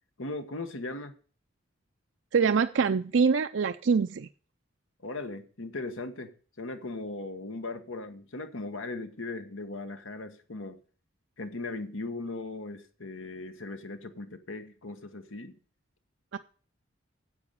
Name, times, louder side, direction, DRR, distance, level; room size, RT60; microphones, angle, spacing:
voice 1, 0.2-1.2 5.0-10.8 11.4-15.5, left 2 dB, 85° left, 8 dB, 1.4 m, -38 dB
voice 2, 2.3-4.3 16.3-16.4, right 5 dB, 65° right, 8 dB, 0.5 m, -24 dB
9.7 x 8.0 x 6.6 m, 0.42 s
head